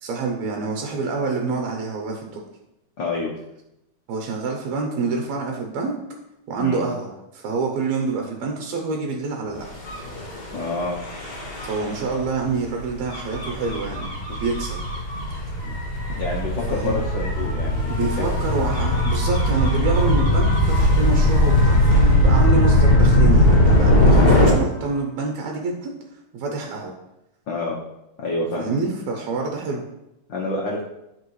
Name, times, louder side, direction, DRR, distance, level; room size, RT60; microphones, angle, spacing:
voice 1, 0.0-2.4 4.1-6.0 6.5-9.7 11.6-14.8 16.7-16.9 17.9-25.9 26.3-26.9 28.6-29.8, right 4 dB, 75° right, 1 dB, 2.0 m, -27 dB
voice 2, 3.0-3.3 6.6-6.8 10.5-11.0 16.2-18.3 27.5-27.8 28.2-28.8 30.3-30.8, left 2 dB, 85° left, -2 dB, 1.0 m, -27 dB
Gull seagull / Waves surf / Siren, 9.8-24.5, left 1 dB, 40° left, 1.8 m, -19 dB
11.0 x 4.7 x 3.1 m, 0.90 s
omnidirectional pair, 3.3 m